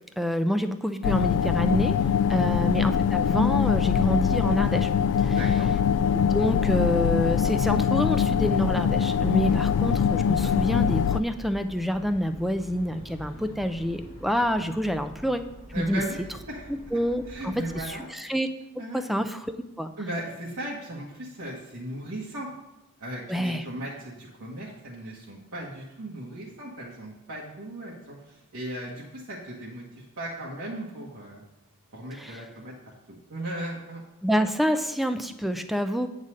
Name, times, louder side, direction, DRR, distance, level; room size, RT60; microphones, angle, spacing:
voice 1, 0.2-2.0 2.3-4.9 5.2-5.4 6.1-15.4 15.8-16.0 16.7-17.5 17.9-18.5 18.9-19.5 19.8-19.9 23.3-23.6 32.2-32.4 34.2-36.1, equal, ahead, 8 dB, 0.4 m, -27 dB
sound 1, 1.0-11.2, left 7 dB, 85° left, 0.3 m, -23 dB
voice 2, 2.3-2.6 5.2-5.7 9.4-9.6 15.7-16.7 17.3-18.1 18.8-19.0 20.0-22.5 23.0-31.4 31.9-32.7 33.3-34.0, right 1 dB, 75° right, -5 dB, 1.4 m, -37 dB
sound 2, 4.4-17.9, equal, 30° right, 1.3 m, -47 dB
sound 3, 11.4-15.3, left 1 dB, 65° left, 1.0 m, -50 dB
8.7 x 4.0 x 6.4 m, 1.0 s
head